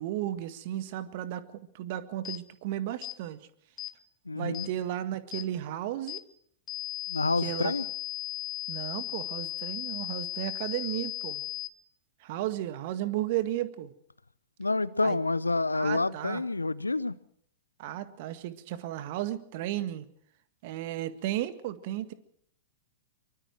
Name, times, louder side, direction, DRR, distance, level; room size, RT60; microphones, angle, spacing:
voice 1, 0.0-1.4 1.7-3.4 4.4-6.2 7.4-7.7 8.7-11.4 12.2-13.9 15.0-15.2 15.7-16.4 17.8-20.1 20.6-22.1, right 13 dB, 50° right, 11 dB, 1.7 m, -34 dB
sound 1, 2.2-2.4 3.0-3.2 3.8-3.9 4.5-4.7 5.3-5.5 6.1-6.2 6.7-11.7, left 14 dB, 30° left, 1.5 m, -36 dB
voice 2, 4.3-4.7 7.1-7.8 14.6-17.2, left 3 dB, 85° left, 19 dB, 0.8 m, -28 dB
23.5 x 23.5 x 4.6 m, 0.64 s
figure-of-eight pair, 105°, 0 cm